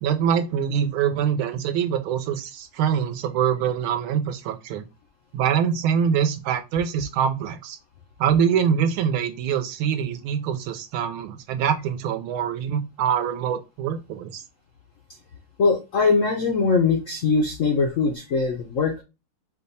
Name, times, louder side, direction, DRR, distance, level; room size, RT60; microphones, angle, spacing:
voice 1, 0.0-4.8 5.3-7.8 8.2-14.3, right 8 dB, 90° right, 1.6 m, -24 dB
voice 2, 15.6-19.0, left 4 dB, 80° left, 0.7 m, -21 dB
4.9 x 2.2 x 4.0 m
omnidirectional pair, 2.3 m